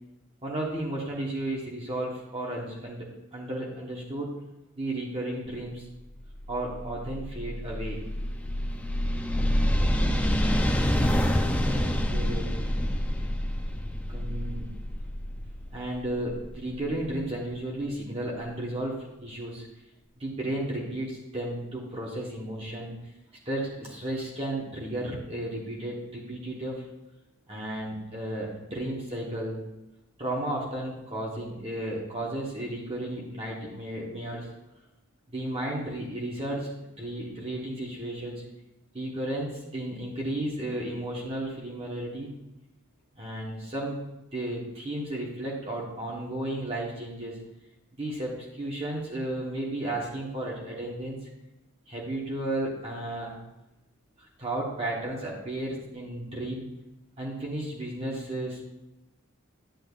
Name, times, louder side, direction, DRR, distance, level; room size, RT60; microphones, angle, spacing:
voice 1, 0.4-4.3 4.8-5.9 6.5-8.0 11.6-12.5 14.1-14.7 15.7-19.7 20.2-23.0 23.4-26.8 27.5-29.6 30.2-34.5 35.3-38.4 38.9-42.3 43.2-44.0 44.3-47.4 48.0-51.2 51.9-53.3 54.2-56.7 57.2-58.6, right 1 dB, 25° right, -4 dB, 1.2 m, -33 dB
sound 1, 6.2-17.0, equal, 5° left, 0.5 m, -27 dB
10.5 x 8.6 x 2.4 m, 0.99 s
head